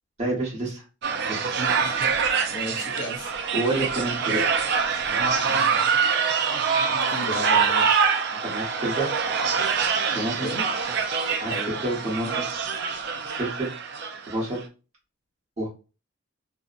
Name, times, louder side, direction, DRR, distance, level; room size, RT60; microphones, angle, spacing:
voice 1, 0.2-0.8 1.2-1.5 3.5-4.5 8.4-9.1 10.1-10.5 11.4-11.5 11.8-12.5 13.3-13.7 14.3-14.6 15.6-15.7, right 2 dB, 30° right, 1.0 m, -28 dB
sound 1, 1.0-14.3, right 6 dB, 50° right, 0.3 m, -25 dB
voice 2, 2.5-3.3 5.5-5.8 6.9-7.9 10.4-10.7 11.4-11.8, left 1 dB, 50° left, 0.7 m, -34 dB
2.7 x 2.1 x 2.4 m
head